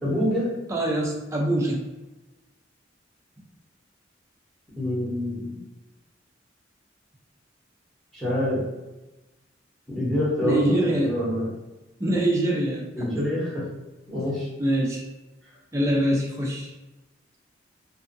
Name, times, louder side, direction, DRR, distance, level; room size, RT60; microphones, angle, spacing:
voice 1, 0.0-0.5 4.8-5.6 8.1-8.6 9.9-11.5 12.9-13.6 14.1-14.5, left 1 dB, ahead, -10 dB, 0.8 m, -26 dB
voice 2, 0.7-1.8 10.4-11.1 12.0-13.3 14.6-15.0 15.7-16.7, right 1 dB, 15° right, -3 dB, 0.4 m, -24 dB
2.6 x 2.4 x 2.5 m, 1.1 s
head